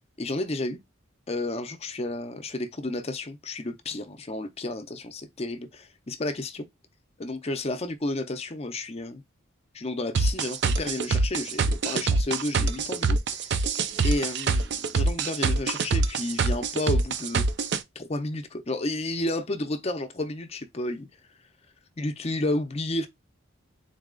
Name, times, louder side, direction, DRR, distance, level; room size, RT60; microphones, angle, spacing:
voice 1, 0.2-0.8 1.3-6.7 7.2-9.2 9.7-13.7 14.0-17.5 18.0-21.1 22.0-23.1, left 2 dB, 30° left, 0.6 m, -31 dB
sound 1, 10.1-17.8, right 4 dB, 55° right, 0.4 m, -24 dB
4.0 x 2.3 x 3.7 m
head